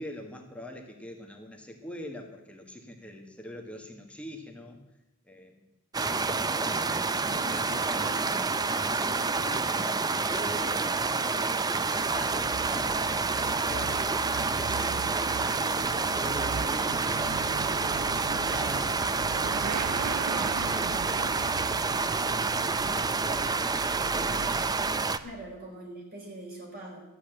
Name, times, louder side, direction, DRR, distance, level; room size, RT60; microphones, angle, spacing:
voice 1, 0.0-4.8 5.3-5.7 6.0-8.1 8.8-9.8 10.0-11.0 11.3-19.0 19.4-24.6, equal, 5° left, 2 dB, 1.6 m, -44 dB
sound 1, 5.9-25.2, right 4 dB, 20° right, 0.5 m, -28 dB
voice 2, 7.1-8.6 9.2-9.9 25.2-27.0, equal, 45° right, -1 dB, 5.0 m, -43 dB
Motorcycle / Accelerating revving vroom, 11.8-25.6, right 7 dB, 85° right, 0.4 m, -40 dB
13.0 x 8.7 x 8.9 m, 0.95 s
head